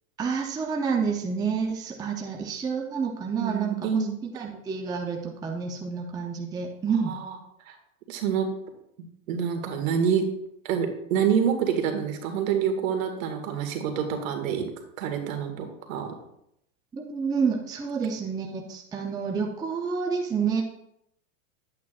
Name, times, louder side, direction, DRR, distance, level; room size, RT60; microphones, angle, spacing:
voice 1, 0.2-4.1 4.3-7.1 16.9-20.6, right 5 dB, 10° right, 2 dB, 0.5 m, -29 dB
voice 2, 3.4-4.1 6.9-7.4 7.7-7.8 8.1-8.5 9.3-10.2 10.7-14.7 15.0-16.1, right 7 dB, 65° right, 5 dB, 1.9 m, -27 dB
10.5 x 8.6 x 2.5 m, 0.76 s
supercardioid pair, 135°, 43 cm